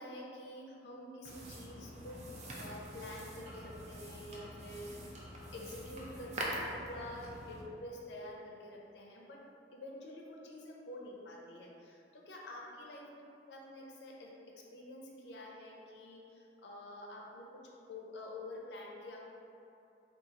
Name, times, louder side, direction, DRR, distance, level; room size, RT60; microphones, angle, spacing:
voice 1, 0.0-5.3 5.5-9.4 9.7-13.1 13.5-17.6 17.9-19.2, left 1 dB, 85° left, -2 dB, 0.6 m, -48 dB
sound 1, 1.2-7.6, right 1 dB, 40° right, 0.5 m, -44 dB
3.9 x 2.4 x 4.0 m, 2.7 s
head